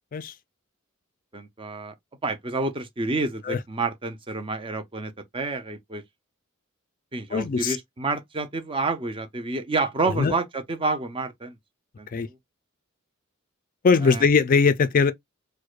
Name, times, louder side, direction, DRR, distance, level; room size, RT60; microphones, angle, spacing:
voice 1, 1.3-1.9 2.2-6.0 7.1-11.5 12.0-12.4 14.0-14.2, right 3 dB, 25° right, 0.6 m, -29 dB
voice 2, 7.3-7.8 10.1-10.3 12.1-12.3 13.8-15.1, left 5 dB, 40° left, 0.3 m, -20 dB
4.7 x 2.1 x 2.4 m
head